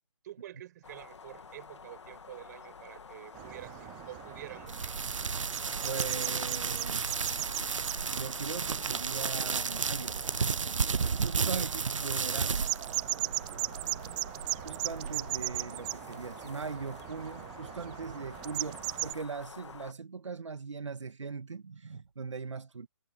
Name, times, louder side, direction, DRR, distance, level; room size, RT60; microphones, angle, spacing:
voice 1, 0.2-5.0 11.5-11.8, right 13 dB, 35° right, 5.8 m, -48 dB
sound 1, 0.8-19.9, left 5 dB, 65° left, 2.2 m, -49 dB
sound 2, 3.3-19.1, right 25 dB, 15° right, 0.4 m, -39 dB
sound 3, 4.7-15.6, right 5 dB, 90° right, 0.4 m, -33 dB
voice 2, 5.8-7.4 7.9-10.3 11.2-12.7 14.6-22.9, right 5 dB, 75° right, 1.6 m, -40 dB
figure-of-eight pair, 145°, 16 cm